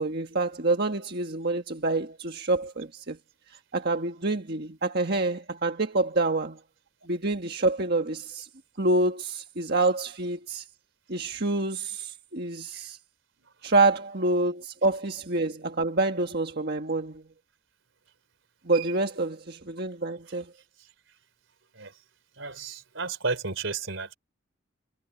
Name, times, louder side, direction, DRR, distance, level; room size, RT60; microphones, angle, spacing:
voice 1, 0.0-3.2 3.7-6.6 7.1-8.5 8.8-10.6 11.1-13.0 13.6-17.2 18.6-20.5, right 2 dB, 55° right, 1.6 m, -27 dB
voice 2, 13.4-13.7 18.7-18.9 20.3-20.4 20.8-20.9 21.7-22.0 22.3-24.2, right 4 dB, 80° right, 3.5 m, -34 dB
head